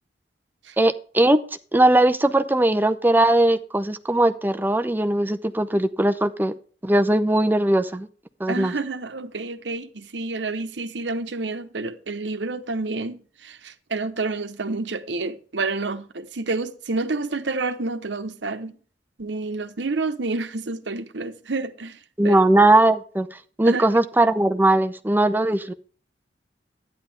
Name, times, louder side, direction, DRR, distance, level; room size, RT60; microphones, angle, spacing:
voice 1, 0.8-1.4 1.7-6.5 6.8-8.1 8.4-8.7 22.2-25.7, right 1 dB, 10° right, 0.7 m, -19 dB
voice 2, 8.5-18.8 19.2-22.4 23.6-23.9, right 3 dB, 75° right, 1.0 m, -29 dB
12.0 x 9.7 x 3.5 m
head